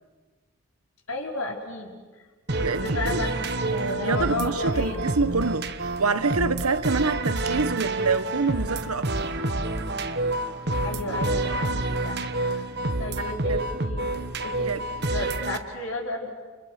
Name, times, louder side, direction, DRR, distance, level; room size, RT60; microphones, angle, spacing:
voice 1, 1.1-2.0 2.6-5.1 10.8-12.6 13.0-14.1 14.4-16.3, left 2 dB, 75° left, 5.1 m, -33 dB
sound 1, 2.5-15.6, right 2 dB, 50° right, 1.3 m, -28 dB
voice 2, 2.6-3.2 4.0-9.3 13.2-13.6 14.7-14.8, right 4 dB, 90° right, 1.2 m, -26 dB
29.5 x 29.0 x 6.7 m
head